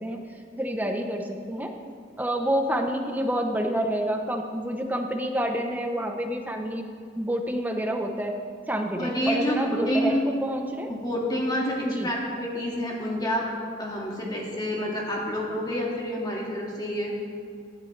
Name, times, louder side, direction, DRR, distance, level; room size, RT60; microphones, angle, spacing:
voice 1, 0.6-1.7 2.2-6.9 7.2-8.4 8.7-10.9 11.8-12.1, equal, 10° right, 3 dB, 0.8 m, -28 dB
voice 2, 9.0-10.2 10.9-13.5 13.8-17.1, equal, 20° left, -3 dB, 2.0 m, -28 dB
17.5 x 11.0 x 3.3 m, 2.2 s
head